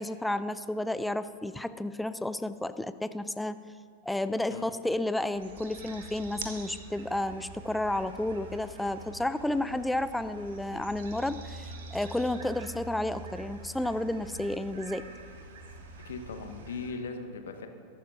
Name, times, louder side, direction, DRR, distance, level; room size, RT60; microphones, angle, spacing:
voice 1, 0.0-3.6 4.1-15.0, left 1 dB, 5° left, 13 dB, 0.4 m, -31 dB
sound 1, 5.3-16.9, right 3 dB, 60° right, 1.6 m, -45 dB
voice 2, 16.0-17.7, left 4 dB, 65° left, 6 dB, 1.2 m, -39 dB
22.0 x 11.5 x 2.7 m, 2.2 s
figure-of-eight pair, 90°, 0 cm